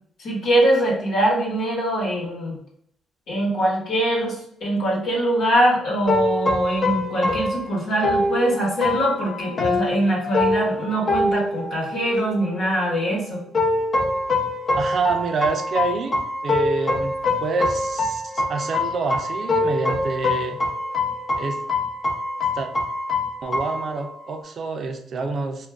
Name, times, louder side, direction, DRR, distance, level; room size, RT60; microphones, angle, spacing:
voice 1, 0.2-2.6 3.3-13.4, right 1 dB, 75° left, -4 dB, 1.2 m, -22 dB
sound 1, 6.1-12.6 13.5-24.4, left 2 dB, 45° left, 0.6 m, -24 dB
voice 2, 14.8-16.2 16.4-20.6 21.4-21.6 22.5-22.7 23.4-25.7, right 4 dB, 55° right, 5 dB, 0.5 m, -27 dB
2.4 x 2.2 x 3.4 m, 0.68 s
cardioid pair, 90°, 0 cm